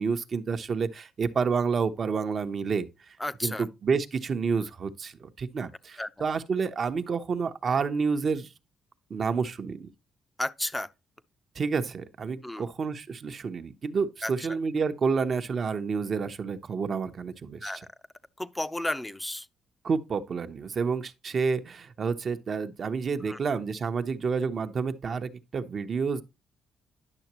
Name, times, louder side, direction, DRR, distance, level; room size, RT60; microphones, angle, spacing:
voice 1, 0.0-3.2 3.4-8.5 9.1-9.9 11.5-17.8 19.8-26.2, right 5 dB, 50° right, 1.0 m, -29 dB
voice 2, 3.2-3.6 6.0-6.1 10.4-10.9 12.4-12.7 14.2-14.3 17.6-17.9 18.4-19.5 23.2-23.4, left 1 dB, 10° left, 0.7 m, -32 dB
11.0 x 6.4 x 3.0 m
cardioid pair, 90°, 0 cm